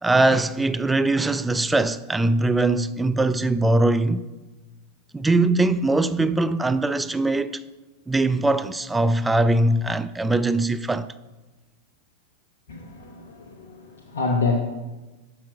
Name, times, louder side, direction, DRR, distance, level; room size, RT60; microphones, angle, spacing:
voice 1, 0.0-4.2 5.1-7.6 8.1-11.1, right 2 dB, 10° right, 0.3 m, -21 dB
voice 2, 12.7-14.6, left 4 dB, 65° left, 0.9 m, -27 dB
7.3 x 5.9 x 5.0 m
figure-of-eight pair, 90°, 0 cm